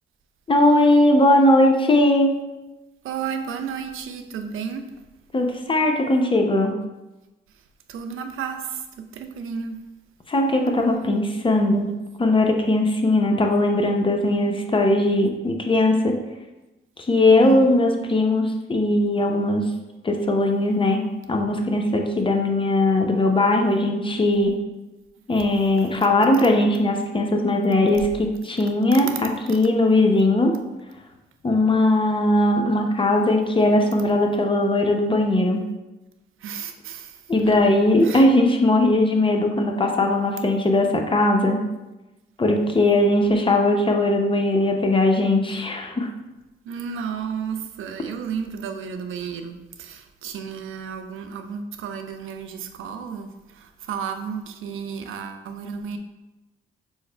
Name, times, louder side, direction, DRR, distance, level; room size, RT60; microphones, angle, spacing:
voice 1, 0.5-2.4 5.3-6.7 10.3-11.9 12.2-16.2 17.1-19.7 20.0-21.0 21.3-24.6 25.3-30.6 31.4-35.6 37.3-41.7 42.4-46.1, left 1 dB, 25° left, 3 dB, 0.7 m, -19 dB
voice 2, 3.0-4.8 7.9-9.8 17.4-17.7 36.4-37.6 38.0-38.3 46.6-56.0, right 6 dB, 75° right, 6 dB, 0.5 m, -32 dB
4.6 x 2.1 x 4.4 m, 1.0 s
cardioid pair, 70°, 21 cm